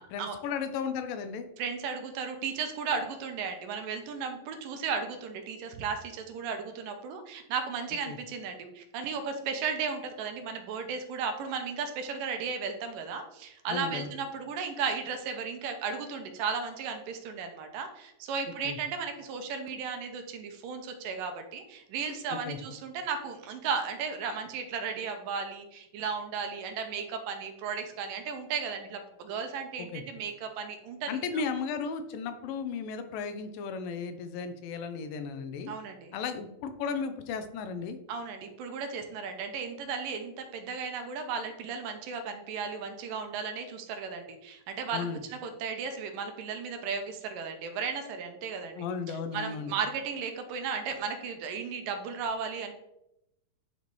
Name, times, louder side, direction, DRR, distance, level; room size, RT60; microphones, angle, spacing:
voice 1, 0.0-1.5 8.1-8.2 13.7-14.1 18.6-18.8 22.5-22.6 29.9-30.0 31.1-35.7 36.1-38.0 44.9-45.2 48.8-49.7, left 5 dB, 85° left, 8 dB, 2.4 m, -35 dB
voice 2, 1.6-31.4 35.7-36.1 38.1-48.8 49.1-52.7, right 5 dB, 80° right, 6 dB, 2.4 m, -35 dB
10.5 x 4.1 x 3.1 m, 0.85 s
omnidirectional pair, 4.0 m